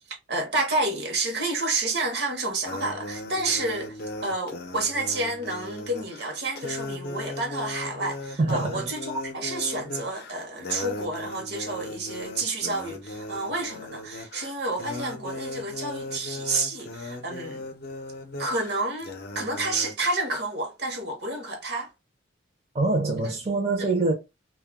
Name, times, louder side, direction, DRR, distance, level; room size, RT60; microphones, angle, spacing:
voice 1, 0.1-17.6 18.4-21.9 23.8-23.9, right 2 dB, 55° right, 0.8 m, -30 dB
sound 1, 2.6-19.9, left 2 dB, 55° left, 0.5 m, -37 dB
voice 2, 8.4-8.9 22.7-24.1, right 2 dB, 35° right, 0.6 m, -24 dB
2.2 x 2.1 x 3.4 m
head